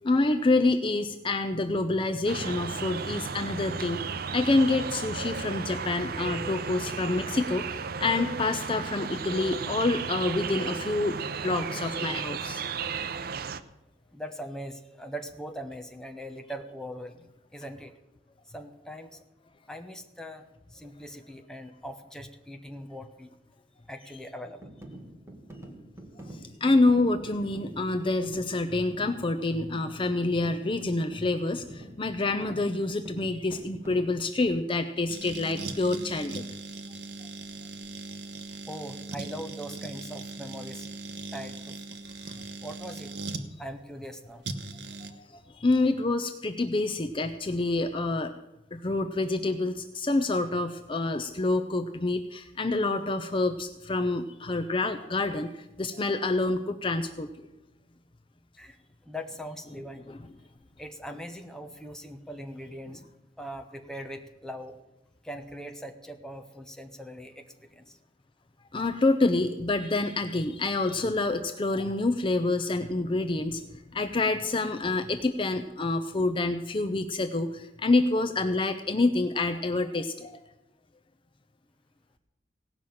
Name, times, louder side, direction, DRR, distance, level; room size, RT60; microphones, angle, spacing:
voice 1, 0.0-4.1 4.3-12.6 26.3-36.4 42.3-42.4 45.2-48.3 48.7-57.3 60.1-60.2 68.7-73.6 73.9-80.4, left 2 dB, 30° left, 7 dB, 0.6 m, -27 dB
sound 1, 2.3-13.6, right 5 dB, 60° right, 0.6 m, -34 dB
voice 2, 14.1-17.9 18.5-19.2 19.7-23.3 23.9-24.7 38.7-40.9 41.3-42.0 42.6-43.1 43.6-44.4 44.8-44.9 58.6-60.1 60.8-63.0 63.4-64.8 65.2-68.0, equal, 5° left, 5 dB, 1.0 m, -41 dB
sound 2, 24.6-34.3, right 1 dB, 15° right, 1.9 m, -46 dB
sound 3, 35.1-43.5 44.4-45.1, right 3 dB, 80° right, 1.1 m, -39 dB
17.5 x 6.1 x 8.7 m, 0.97 s
head